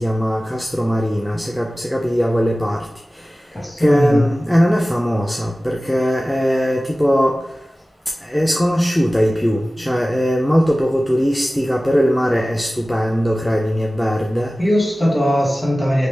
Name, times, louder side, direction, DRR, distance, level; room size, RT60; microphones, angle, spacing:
voice 1, 0.0-2.9 3.2-3.3 3.8-7.4 8.2-14.5, equal, 5° left, 1 dB, 0.4 m, -19 dB
voice 2, 3.5-4.3 14.6-16.1, equal, 25° left, -3 dB, 1.3 m, -19 dB
3.0 x 2.9 x 3.2 m, 0.86 s
cardioid pair, 60°, 0 cm